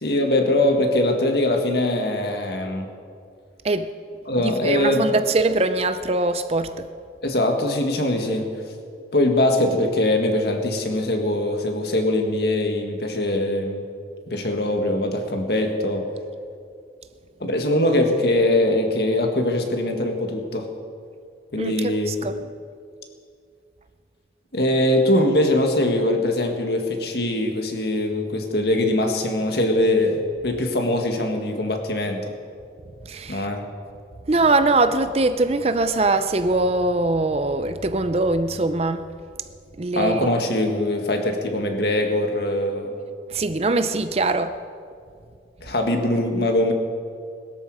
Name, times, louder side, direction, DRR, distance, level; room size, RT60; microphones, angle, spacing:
voice 1, 0.0-2.9 4.3-5.1 7.2-8.5 9.1-13.8 14.3-16.1 17.4-20.7 21.5-22.1 24.5-32.2 33.3-33.6 39.9-43.0 45.6-46.7, left 1 dB, 60° left, 3 dB, 1.9 m, -22 dB
voice 2, 4.4-6.9 21.6-22.4 33.0-33.5 34.3-39.1 39.8-40.3 43.3-44.6, right 2 dB, 35° right, 10 dB, 0.5 m, -22 dB
21.0 x 13.0 x 4.9 m, 2.3 s
head